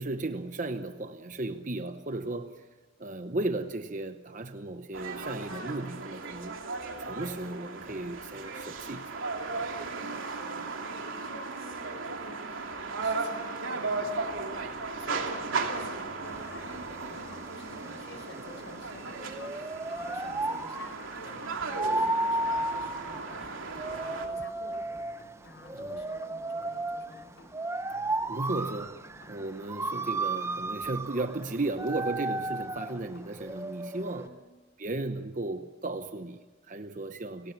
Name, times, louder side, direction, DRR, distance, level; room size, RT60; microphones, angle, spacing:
voice 1, 0.0-2.7 3.0-6.6 7.0-9.2 18.1-18.4 22.0-22.1 25.7-26.0 28.2-34.3 34.8-37.5, right 2 dB, 40° right, 0.9 m, -35 dB
sound 1, 4.9-24.3, right 3 dB, 80° right, 2.8 m, -36 dB
voice 2, 9.8-14.0 15.0-25.0 25.4-27.5 28.1-28.2 34.2-34.4, left 1 dB, 60° left, 4.9 m, -49 dB
Rain, 13.8-33.6, left 1 dB, 80° left, 3.5 m, -58 dB
sound 2, 16.2-34.3, right 2 dB, 15° right, 0.7 m, -34 dB
30.0 x 18.5 x 7.4 m
head